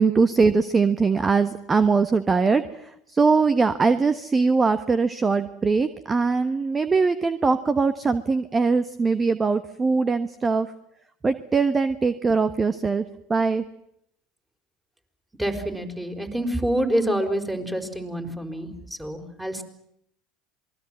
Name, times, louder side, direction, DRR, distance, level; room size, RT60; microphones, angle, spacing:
voice 1, 0.0-2.6 3.1-10.7 11.2-13.0 13.3-13.6, right 4 dB, 25° right, 12 dB, 1.2 m, -21 dB
voice 2, 15.4-18.7 19.0-19.6, right 1 dB, 5° right, 5 dB, 5.0 m, -27 dB
27.5 x 21.0 x 7.7 m, 0.75 s
hypercardioid pair, 80°, 0 cm